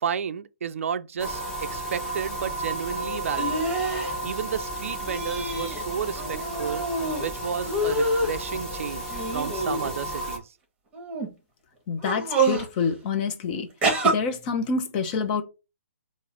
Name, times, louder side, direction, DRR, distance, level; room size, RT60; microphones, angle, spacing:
voice 1, 0.0-3.6 4.0-6.8 7.2-10.5, right 7 dB, 65° right, 0.4 m, -32 dB
sound 1, 1.2-10.4, right 1 dB, 10° left, 1.2 m, -33 dB
sound 2, 3.3-4.1 5.1-5.8 6.1-7.2 7.6-8.4 9.1-10.2 10.9-11.3 12.0-12.7 13.8-14.1, right 2 dB, 15° right, 1.3 m, -26 dB
voice 2, 11.9-13.7 14.0-15.4, left 5 dB, 35° left, 0.8 m, -27 dB
3.9 x 2.4 x 4.2 m
figure-of-eight pair, 135°, 8 cm